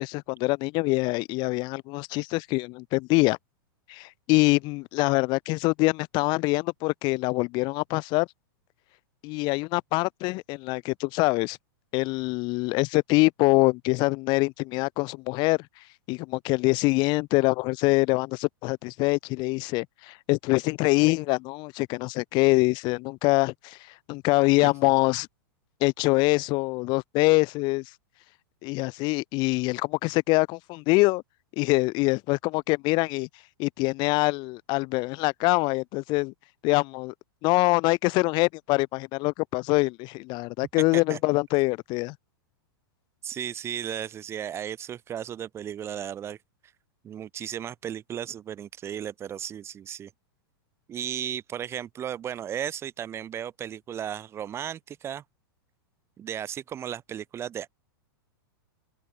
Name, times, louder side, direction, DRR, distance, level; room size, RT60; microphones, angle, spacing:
voice 1, 0.0-3.4 3.9-8.3 9.2-11.6 11.9-15.6 16.1-23.8 24.1-25.3 25.8-27.8 28.6-31.2 31.6-33.3 33.6-36.3 36.6-37.1 37.4-42.1, left 24 dB, 35° left, 3.6 m, -24 dB
voice 2, 43.2-46.4 47.0-50.1 50.9-55.2 56.2-57.7, right 9 dB, 20° right, 3.1 m, -35 dB
open air
supercardioid pair, 150°, 13 cm